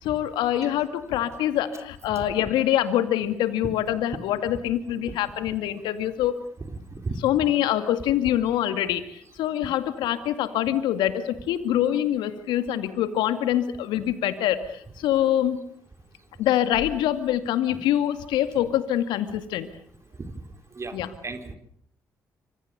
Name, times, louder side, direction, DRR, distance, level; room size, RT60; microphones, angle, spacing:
voice 1, 0.0-6.3 7.2-15.6 16.4-19.7 20.9-21.1, left 11 dB, 75° left, 10 dB, 2.1 m, -25 dB
voice 2, 6.7-7.1 20.2-20.3 20.7-21.5, right 3 dB, 35° right, 7 dB, 4.4 m, -35 dB
26.5 x 25.5 x 6.8 m, 0.67 s
hypercardioid pair, 45°, 8 cm